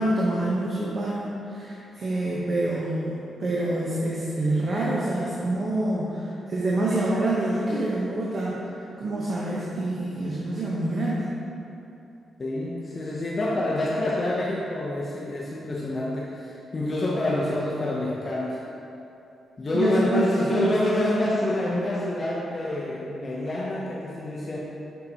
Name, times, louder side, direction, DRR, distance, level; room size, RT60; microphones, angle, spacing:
voice 1, 0.0-6.2 6.5-8.6 9.0-11.3 19.7-21.4, right 1 dB, 40° right, -6 dB, 0.7 m, -26 dB
voice 2, 12.4-18.6 19.6-24.6, left 1 dB, 30° left, -5 dB, 0.6 m, -27 dB
6.4 x 5.5 x 2.8 m, 2.9 s
wide cardioid pair, 150°, 0 cm